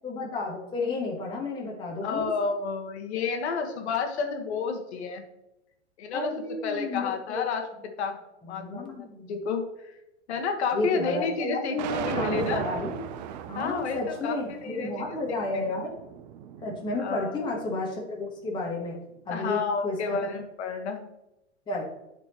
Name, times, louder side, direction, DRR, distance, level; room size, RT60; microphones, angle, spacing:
voice 1, 0.0-2.3 6.1-7.4 8.4-9.3 10.7-13.0 13.5-15.9 16.6-19.0 19.2-20.0 21.7-21.8, left 2 dB, 15° left, -2 dB, 1.3 m, -32 dB
voice 2, 2.0-5.2 6.0-6.3 6.6-8.2 8.4-9.9 10.3-12.7 13.5-14.4 14.6-14.9 17.0-17.4 19.3-21.0, left 5 dB, 65° left, 4 dB, 1.5 m, -30 dB
sound 1, 11.8-17.9, right 9 dB, 40° right, 0.5 m, -37 dB
11.0 x 4.3 x 3.0 m, 0.89 s
hypercardioid pair, 145°, 36 cm